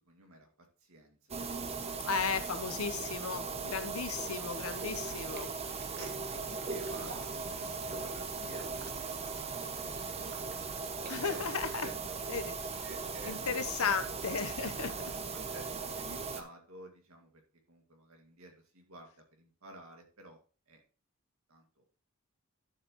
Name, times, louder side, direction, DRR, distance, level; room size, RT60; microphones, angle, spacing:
voice 1, 0.1-2.1 4.6-4.7 6.0-10.7 11.2-12.2 12.8-14.1 15.1-17.4 17.7-20.4 20.7-20.8 21.5-21.8, right 1 dB, 70° right, 3 dB, 2.3 m, -53 dB
sound 1, 1.3-16.4, right 4 dB, 30° right, 0.9 m, -38 dB
voice 2, 2.0-5.5 11.1-11.9 12.3-12.8 13.3-15.1, left 5 dB, 80° left, 11 dB, 0.9 m, -35 dB
sound 2, 4.3-11.8, right 3 dB, 50° right, 1.7 m, -54 dB
11.5 x 6.6 x 3.1 m, 0.37 s
head